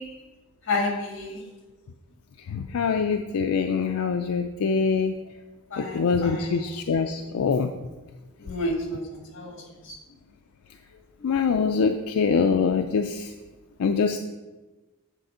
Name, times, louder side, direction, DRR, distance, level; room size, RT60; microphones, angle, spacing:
voice 1, 0.7-1.4 5.7-6.6 8.4-9.6 9.8-9.9, left 2 dB, 55° left, 1 dB, 1.6 m, -30 dB
voice 2, 2.5-5.1 5.8-7.7 11.2-13.3 13.8-14.2, left 5 dB, 85° left, 5 dB, 0.4 m, -24 dB
8.1 x 3.6 x 5.6 m, 1.2 s
head